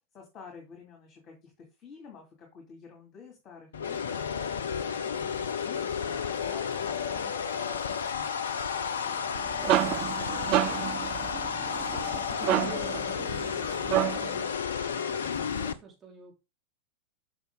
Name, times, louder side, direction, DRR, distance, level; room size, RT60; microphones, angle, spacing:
voice 1, 0.1-4.2 4.5-8.5 8.7-9.5 10.1-13.9 14.2-14.5, left 5 dB, 30° left, 0 dB, 2.5 m, -49 dB
sound 1, 3.7-15.7, left 7 dB, 65° left, 0.6 m, -32 dB
sound 2, 9.2-14.4, right 13 dB, 40° right, 0.4 m, -30 dB
voice 2, 9.4-10.0 14.8-16.3, right 4 dB, 20° right, -3 dB, 4.5 m, -50 dB
6.9 x 5.9 x 3.7 m, 0.26 s
figure-of-eight pair, 90°, 0 cm